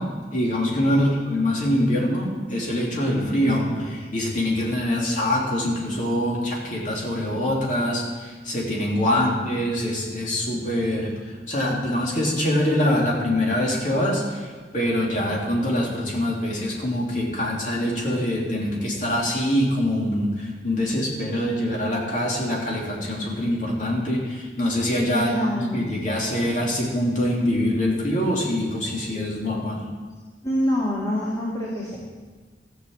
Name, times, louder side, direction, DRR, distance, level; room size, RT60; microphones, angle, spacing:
voice 1, 0.0-29.9, left 1 dB, 45° left, -3 dB, 3.1 m, -24 dB
voice 2, 9.0-9.4 25.1-25.9 30.4-32.0, equal, 20° left, -6 dB, 2.2 m, -26 dB
15.0 x 6.5 x 7.9 m, 1.4 s
head